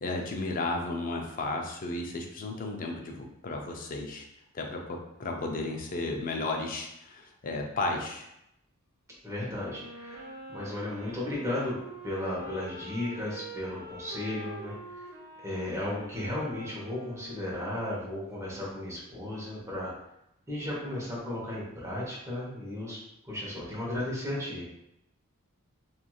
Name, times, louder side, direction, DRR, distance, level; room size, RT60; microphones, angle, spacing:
voice 1, 0.0-4.3 4.5-8.3, left 2 dB, 40° left, 2 dB, 0.4 m, -33 dB
voice 2, 9.2-11.8 12.0-14.8 15.4-19.9 20.5-23.0 23.2-24.6, left 1 dB, 15° right, -6 dB, 0.9 m, -35 dB
Wind instrument woodwind instrument, 9.6-17.9, right 1 dB, 45° right, 1.1 m, -45 dB
3.0 x 2.6 x 2.3 m, 0.81 s
head